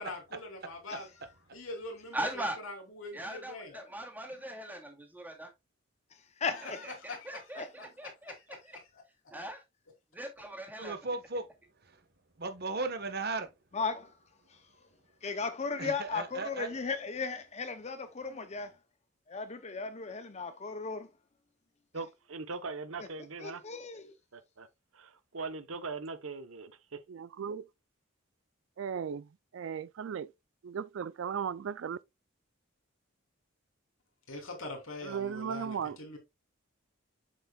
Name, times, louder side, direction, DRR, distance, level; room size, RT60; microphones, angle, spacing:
voice 1, 0.0-3.7 6.5-7.5 7.8-9.0 34.3-36.2, left 2 dB, 80° left, 3.1 m, -44 dB
voice 2, 2.1-2.6 3.1-5.5 7.0-8.1 9.3-9.6 10.1-10.9, right 1 dB, 10° right, 2.2 m, -39 dB
voice 3, 6.4-6.9 7.6-7.7 13.7-14.1 14.5-14.6 15.2-18.7 19.3-21.1 23.4-24.1, left 4 dB, 35° left, 0.6 m, -36 dB
voice 4, 10.8-11.5 12.4-13.5 15.8-16.7, right 3 dB, 50° right, 1.2 m, -36 dB
voice 5, 21.9-23.6 24.3-24.7 24.9-27.0, right 4 dB, 85° right, 0.9 m, -41 dB
voice 6, 27.1-27.7 28.8-29.2 29.5-30.3 30.6-32.0 35.1-36.0, right 7 dB, 65° right, 0.4 m, -36 dB
7.5 x 7.0 x 2.3 m
head